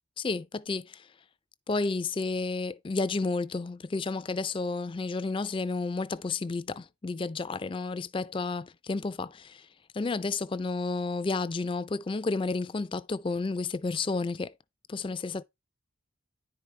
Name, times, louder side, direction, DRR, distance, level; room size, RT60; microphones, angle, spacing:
voice 1, 0.2-1.1 1.7-9.7 9.9-14.5 14.9-15.4, left 3 dB, 25° left, 0.3 m, -31 dB
10.0 x 4.8 x 3.2 m
head